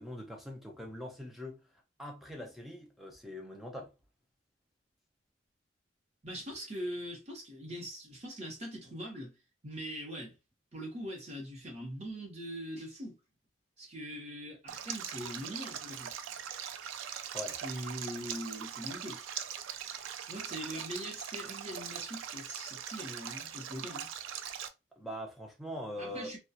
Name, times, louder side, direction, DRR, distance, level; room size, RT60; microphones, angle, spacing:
voice 1, 0.0-1.6 2.0-3.9 17.3-17.6 25.0-26.3, left 1 dB, ahead, 0.4 m, -42 dB
voice 2, 6.2-9.3 9.6-10.4 10.7-13.2 13.8-16.1 17.6-19.2 20.3-24.1 26.0-26.4, equal, 35° right, 0.9 m, -42 dB
Stream, 14.7-24.7, right 9 dB, 85° right, 0.3 m, -41 dB
2.3 x 2.2 x 2.6 m
head